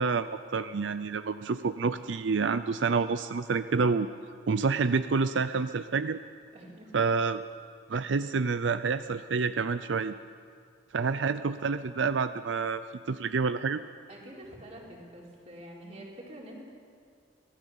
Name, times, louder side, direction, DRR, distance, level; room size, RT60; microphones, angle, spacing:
voice 1, 0.0-4.1 4.5-6.2 6.9-7.4 7.9-10.1 10.9-12.8 13.1-13.8, right 4 dB, 85° right, 12 dB, 0.5 m, -28 dB
voice 2, 6.5-6.9 11.1-11.2 14.1-16.6, right 1 dB, 40° right, -2 dB, 4.4 m, -46 dB
25.0 x 17.0 x 7.2 m, 2.1 s
head